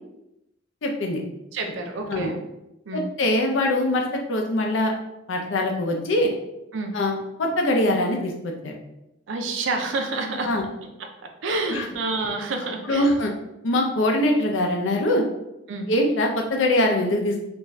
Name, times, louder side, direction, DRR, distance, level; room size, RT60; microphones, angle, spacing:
voice 1, 0.8-1.2 2.1-2.3 2.9-4.9 5.3-6.3 6.9-8.3 8.6-8.7 10.4-10.6 11.7-11.8 12.9-13.3 13.6-15.2 15.9-17.4, left 1 dB, 90° left, 1 dB, 0.5 m, -22 dB
voice 2, 1.5-2.4 2.9-3.1 6.7-6.9 9.3-10.5 11.4-13.2 15.7-15.9, right 3 dB, 85° right, 4 dB, 0.5 m, -28 dB
2.5 x 2.3 x 3.1 m, 0.89 s
head